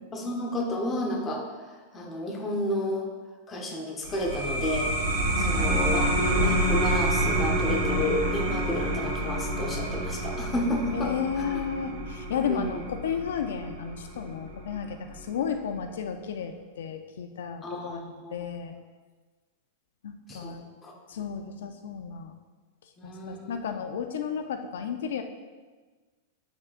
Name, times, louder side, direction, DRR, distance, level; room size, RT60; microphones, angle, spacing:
voice 1, 0.1-1.4 1.9-3.1 3.5-4.9 5.4-11.6 12.5-12.8 17.6-18.3 20.3-20.6 20.8-20.9 23.0-23.6, left 1 dB, 15° left, 1 dB, 0.9 m, -31 dB
sound 1, 4.0-15.2, right 1 dB, 60° right, 1.8 m, -28 dB
voice 2, 5.4-5.9 10.9-18.8 20.0-20.6 21.1-22.3 23.0-25.2, left 7 dB, 80° left, 7 dB, 0.5 m, -33 dB
8.0 x 6.1 x 2.5 m, 1.3 s
supercardioid pair, 160°, 0 cm